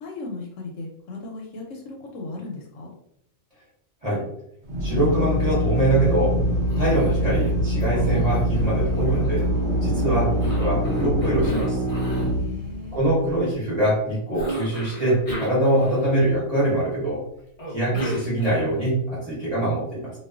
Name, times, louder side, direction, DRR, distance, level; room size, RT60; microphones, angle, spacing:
voice 1, 0.0-2.9 9.9-10.3 12.4-13.0 17.9-18.1, left 3 dB, 70° left, 0 dB, 0.9 m, -36 dB
Drill, 4.6-13.3, equal, 70° right, 0.9 m, -24 dB
voice 2, 4.8-6.4 6.8-9.4 9.8-11.8 12.9-17.2 17.7-20.1, right 1 dB, 30° right, -8 dB, 0.9 m, -23 dB
Cough, 6.7-7.5 7.8-9.9 10.4-12.4 14.3-16.4 17.6-18.9, right 1 dB, 45° left, 0.4 m, -33 dB
2.3 x 2.3 x 2.3 m, 0.75 s
omnidirectional pair, 1.4 m